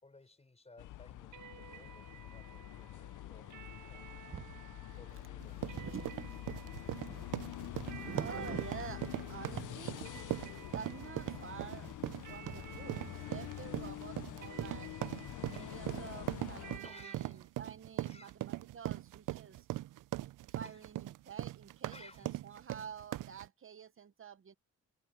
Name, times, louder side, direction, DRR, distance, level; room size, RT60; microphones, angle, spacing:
voice 1, 0.0-4.1 5.0-5.8 15.5-16.0 16.8-17.6 18.0-18.4 19.5-19.6 20.6-20.8 21.9-22.4, left 3 dB, 20° left, 5.4 m, -59 dB
sound 1, 0.8-16.8, left 14 dB, 80° left, 0.6 m, -46 dB
sound 2, 1.3-17.2, right 9 dB, 70° right, 1.5 m, -55 dB
voice 2, 4.3-5.0 5.7-9.0 9.3-10.0 10.7-11.9 12.2-14.9 15.5-19.7 20.5-24.5, right 7 dB, 45° right, 0.9 m, -48 dB
sound 3, 5.4-23.5, right 15 dB, 90° right, 0.5 m, -40 dB
wide cardioid pair, 135°, 31 cm